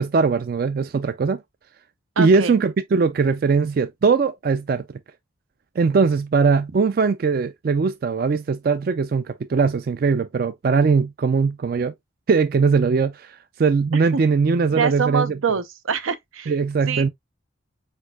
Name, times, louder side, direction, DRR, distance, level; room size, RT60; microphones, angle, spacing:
voice 1, 0.0-1.4 2.2-4.8 5.8-11.9 12.3-15.4 16.5-17.1, right 5 dB, 45° right, 0.3 m, -20 dB
voice 2, 2.2-2.5 13.9-14.2 14.7-16.5 16.8-17.1, right 6 dB, 85° right, 0.7 m, -25 dB
4.5 x 4.5 x 2.2 m
head